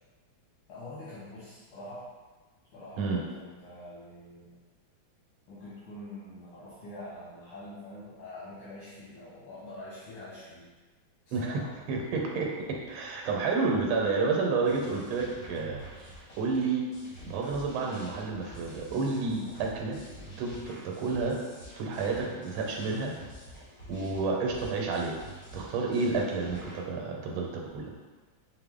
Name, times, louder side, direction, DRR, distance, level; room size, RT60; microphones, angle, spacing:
voice 1, 0.7-2.1 2.7-4.6 5.5-10.7 11.3-11.8 19.2-19.5, left 1 dB, 90° left, -10 dB, 1.9 m, -45 dB
voice 2, 11.3-11.6 11.9-16.8 17.3-20.0 20.4-21.4 21.8-23.1 23.9-25.2 25.5-27.9, right 4 dB, 90° right, 0 dB, 1.5 m, -30 dB
sound 1, 14.6-26.9, right 1 dB, 35° left, 0.7 m, -48 dB
5.1 x 2.0 x 3.5 m, 1.3 s
omnidirectional pair, 2.2 m